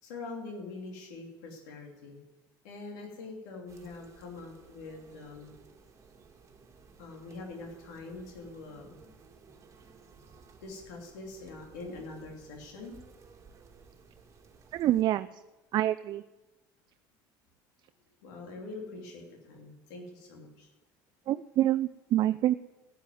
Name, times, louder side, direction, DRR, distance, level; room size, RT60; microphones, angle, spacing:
voice 1, 0.0-2.2 2.6-5.5 7.0-9.0 10.6-13.0 18.2-20.7, left 3 dB, 90° left, 1 dB, 2.9 m, -44 dB
sound 1, 3.7-15.0, right 5 dB, 35° right, 2.1 m, -57 dB
voice 2, 14.7-15.4 15.7-16.2 21.3-22.5, right 13 dB, 50° right, 11 dB, 0.5 m, -26 dB
12.0 x 9.3 x 9.4 m, 1.1 s
supercardioid pair, 100°, 9 cm